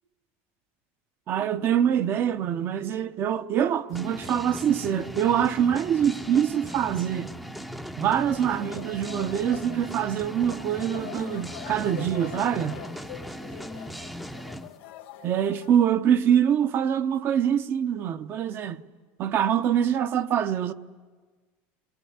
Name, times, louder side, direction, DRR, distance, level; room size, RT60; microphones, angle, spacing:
voice 1, 1.3-7.3 8.0-12.8 15.2-18.8 19.2-20.7, right 9 dB, 40° right, 0.9 m, -24 dB
sound 1, 3.9-14.7, equal, ahead, 0.7 m, -38 dB
sound 2, 8.3-15.9, left 13 dB, 80° left, 1.7 m, -44 dB
26.0 x 21.5 x 9.6 m
supercardioid pair, 145°, 6 cm